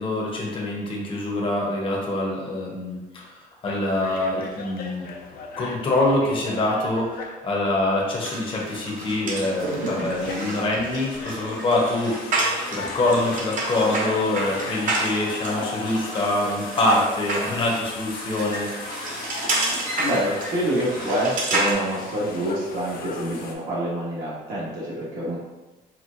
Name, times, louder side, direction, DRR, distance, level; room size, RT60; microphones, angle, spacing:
voice 1, 0.0-5.1 5.6-18.7, left 2 dB, 30° left, -2 dB, 0.7 m, -25 dB
sound 1, 3.6-8.0 8.4-23.6, left 4 dB, 60° left, 0.5 m, -38 dB
sound 2, 8.2-21.7, right 2 dB, 50° right, 0.8 m, -30 dB
voice 2, 20.0-25.4, right 1 dB, 70° right, -8 dB, 1.2 m, -26 dB
4.4 x 2.1 x 2.5 m, 1.2 s
cardioid pair, 110°, 17 cm